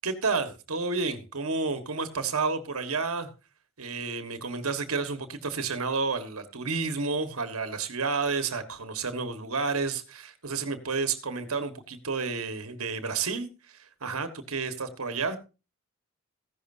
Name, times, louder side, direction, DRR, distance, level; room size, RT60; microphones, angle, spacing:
voice 1, 0.0-3.3 3.8-15.4, right 4 dB, 90° right, 1.4 m, -30 dB
15.0 x 11.0 x 2.6 m
head